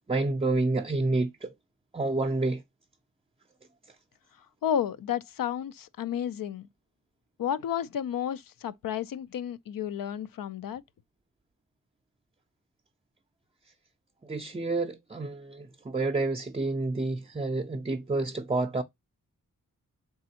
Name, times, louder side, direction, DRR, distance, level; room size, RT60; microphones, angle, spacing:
voice 1, 0.1-1.5 1.9-2.6 14.3-18.8, right 2 dB, 20° right, 0.5 m, -29 dB
voice 2, 4.6-6.7 7.4-10.8, left 9 dB, 80° left, 0.5 m, -32 dB
4.1 x 3.5 x 2.7 m
wide cardioid pair, 80°, 33 cm